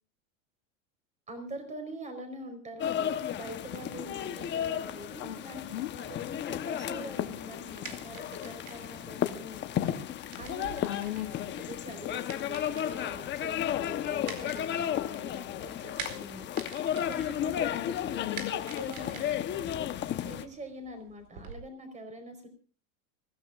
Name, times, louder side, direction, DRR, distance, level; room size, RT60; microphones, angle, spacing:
voice 1, 1.3-9.7 10.4-10.8 11.5-16.8 17.0-18.1 18.5-19.4 20.2-22.5, right 1 dB, 15° right, 7 dB, 4.7 m, -44 dB
sound 1, 2.8-20.4, left 10 dB, 25° left, 1.1 m, -33 dB
voice 2, 5.2-5.9 10.8-11.5 17.7-18.5, left 15 dB, 80° left, 2 dB, 1.6 m, -37 dB
sound 2, 7.5-21.5, right 6 dB, 75° right, 4.6 m, -48 dB
25.5 x 16.0 x 2.5 m, 0.39 s
supercardioid pair, 140°, 41 cm